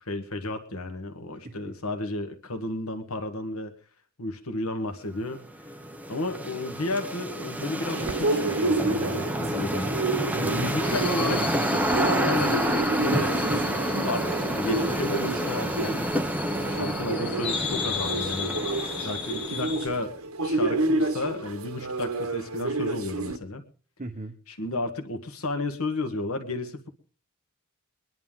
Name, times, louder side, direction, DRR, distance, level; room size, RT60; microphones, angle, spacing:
voice 1, 0.0-3.7 4.2-5.7 6.1-9.9 10.4-11.4 12.1-12.6 13.0-13.4 13.7-16.3 16.6-18.5 19.0-23.6 24.5-26.9, left 2 dB, 70° left, 6 dB, 1.5 m, -33 dB
voice 2, 1.4-1.8 9.5-10.0 10.3-12.2 24.0-24.4, right 2 dB, 35° right, 5 dB, 1.0 m, -37 dB
sound 1, 5.3-19.8, right 1 dB, 5° right, 0.9 m, -29 dB
sound 2, 7.8-23.4, right 2 dB, 70° right, 1.2 m, -30 dB
sound 3, 10.8-19.9, left 7 dB, 50° left, 1.2 m, -36 dB
22.5 x 11.0 x 3.7 m, 0.39 s
head